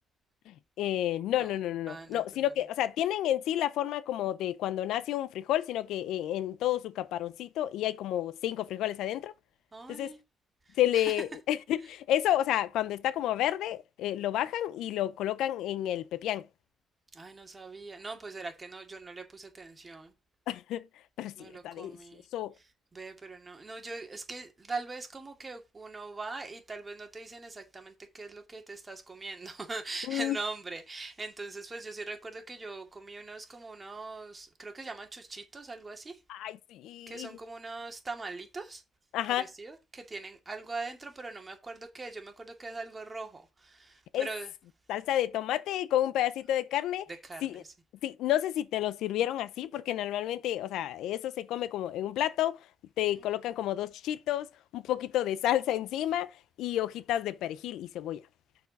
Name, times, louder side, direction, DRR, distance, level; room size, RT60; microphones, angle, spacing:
voice 1, 0.8-9.3 9.9-10.1 10.8-16.5 20.5-20.8 21.2-22.0 22.3-22.5 30.1-30.4 36.3-37.3 39.1-39.5 44.1-44.3 44.9-47.1 47.4-47.6 48.0-52.6 53.0-54.5 54.7-56.3 56.6-58.2, left 12 dB, 85° left, 0.5 m, -30 dB
voice 2, 1.9-2.4 9.7-10.2 10.7-11.1 17.1-20.1 21.4-22.3 22.6-22.7 22.9-36.2 37.1-38.8 39.3-44.5 47.2-47.7 53.0-53.2, right 3 dB, 25° right, 2.3 m, -42 dB
6.5 x 4.8 x 5.9 m
cardioid pair, 90°, 0 cm